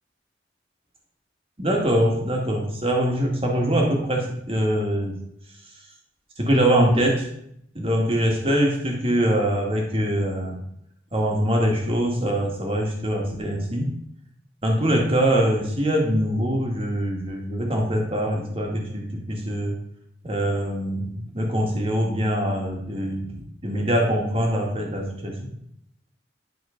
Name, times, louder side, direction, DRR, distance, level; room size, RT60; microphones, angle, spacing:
voice 1, 1.6-5.1 6.4-7.3 7.8-10.6 11.1-14.0 14.6-19.7 20.2-25.5, equal, 30° right, 0 dB, 1.9 m, -23 dB
11.0 x 4.4 x 5.1 m, 0.72 s
head